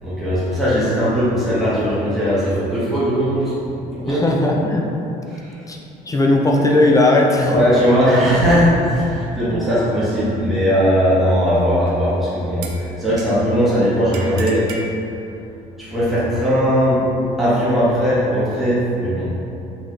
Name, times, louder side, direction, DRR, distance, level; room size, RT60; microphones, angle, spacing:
voice 1, 0.0-4.3 5.3-5.6 7.5-14.7 15.8-19.3, equal, ahead, -11 dB, 1.1 m, -18 dB
voice 2, 4.1-4.9 5.7-7.7, left 2 dB, 20° left, -1 dB, 0.4 m, -17 dB
sound 1, 11.9-12.1 12.6-13.6 14.1-14.9, right 4 dB, 90° right, 0.4 m, -36 dB
4.1 x 3.0 x 3.2 m, 2.9 s
cardioid pair, 110°, 17 cm